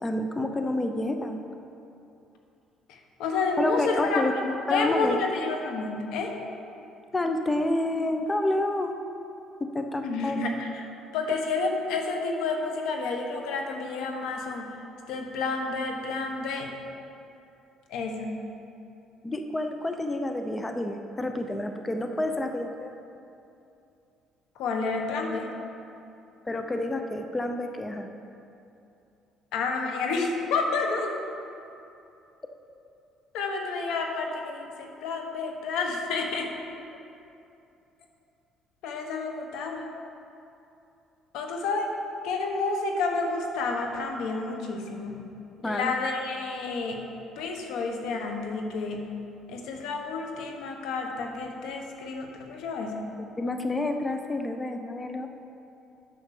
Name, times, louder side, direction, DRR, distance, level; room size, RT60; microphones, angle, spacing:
voice 1, 0.0-1.4 3.6-4.3 4.7-5.2 7.1-9.0 9.6-10.5 19.2-22.9 26.4-28.1 45.6-45.9 53.4-55.3, left 1 dB, 15° left, 5 dB, 0.6 m, -29 dB
voice 2, 2.9-6.4 10.0-10.8 11.1-14.8 15.1-16.7 17.9-18.4 24.5-25.5 29.5-31.1 33.3-36.5 38.8-39.9 41.3-41.9 42.2-45.3 45.6-47.0 47.4-49.2 49.5-53.2, left 3 dB, 80° left, 3 dB, 1.2 m, -30 dB
8.7 x 6.4 x 6.7 m, 2.7 s
cardioid pair, 120°, 0 cm